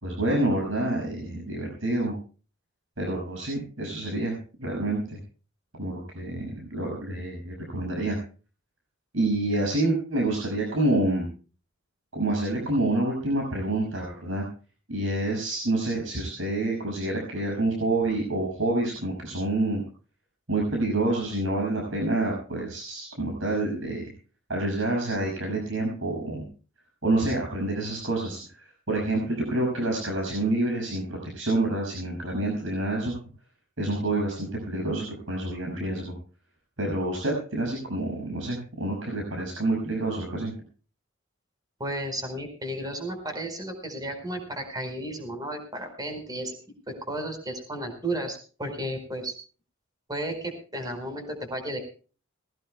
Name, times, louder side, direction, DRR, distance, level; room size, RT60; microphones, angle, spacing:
voice 1, 0.0-2.1 3.0-5.2 5.7-8.2 9.1-11.3 12.1-14.5 14.9-19.8 20.5-24.0 24.5-26.4 27.0-33.1 33.8-36.1 36.8-40.5, right 2 dB, 70° right, 0 dB, 6.1 m, -28 dB
voice 2, 41.8-46.6 46.9-49.3 50.1-51.8, right 1 dB, 20° right, 6 dB, 4.6 m, -33 dB
20.5 x 18.5 x 2.2 m, 0.37 s
head